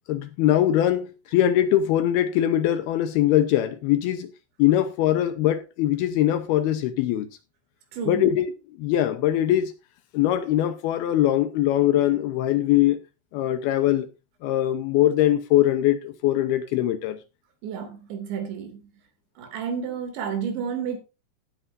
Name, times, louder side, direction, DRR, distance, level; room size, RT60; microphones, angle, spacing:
voice 1, 0.1-4.3 4.6-7.3 8.1-8.5 8.8-9.7 10.1-13.0 13.3-14.1 14.4-17.2, left 12 dB, 75° left, 2.5 m, -22 dB
voice 2, 7.9-8.3 17.6-18.9 19.4-21.0, right 7 dB, 85° right, 4.8 m, -31 dB
17.5 x 8.7 x 2.6 m
omnidirectional pair, 5.0 m